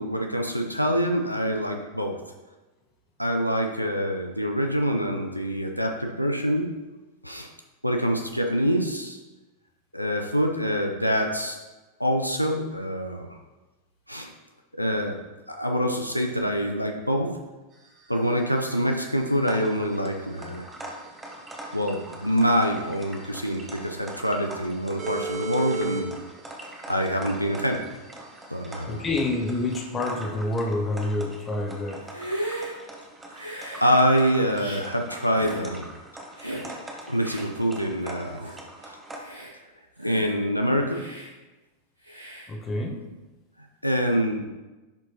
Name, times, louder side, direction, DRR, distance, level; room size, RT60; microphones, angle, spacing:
voice 1, 0.0-2.2 3.2-6.8 7.2-7.5 7.8-9.2 9.9-11.6 12.0-13.4 14.1-14.3 14.7-15.2 15.5-17.4 18.1-20.7 21.7-26.2 26.9-27.8 28.5-29.1 33.8-35.9 37.1-38.5 38.8-39.0 40.0-41.1 43.8-44.4, equal, 90° left, 3 dB, 0.6 m, -25 dB
sound 1, 17.7-29.9, right 4 dB, 35° right, 1.7 m, -40 dB
sound 2, 19.4-39.2, right 1 dB, 10° right, 1.1 m, -43 dB
voice 2, 28.9-32.0 42.5-43.0, left 2 dB, 20° left, 1 dB, 1.1 m, -28 dB
Hiss, 32.0-32.7 33.3-33.9 34.5-34.8 35.3-35.6 36.4-36.7 37.2-37.4 38.0-38.1 38.4-38.6 39.1-39.5 40.0-40.4 40.9-41.3 42.0-42.5, right 1 dB, 90° right, 1.6 m, -36 dB
10.5 x 4.8 x 2.8 m, 1.2 s
figure-of-eight pair, 90°, 0 cm